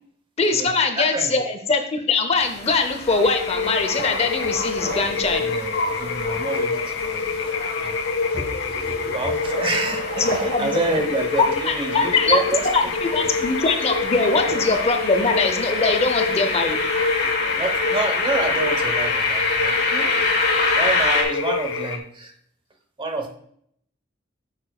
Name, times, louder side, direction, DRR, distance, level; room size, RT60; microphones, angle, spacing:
voice 1, 0.4-5.4 10.2-10.7 11.4-12.4 12.7-16.8, left 4 dB, 35° left, 6 dB, 0.7 m, -22 dB
voice 2, 1.0-1.3 5.4-12.9 17.2-22.3 23.0-23.3, right 2 dB, 25° right, 5 dB, 0.9 m, -28 dB
sound 1, 2.4-21.2, left 3 dB, 55° left, 1.5 m, -27 dB
sound 2, 2.4-2.5 3.6-5.8 7.1-7.2 7.5-7.6 8.5-8.6 9.3-11.6 12.4-12.7 13.1-13.4 14.3-14.9, right 3 dB, 70° right, 0.7 m, -35 dB
sound 3, 3.2-22.0, left 4 dB, 80° left, 0.6 m, -27 dB
8.6 x 6.7 x 2.3 m, 0.66 s
head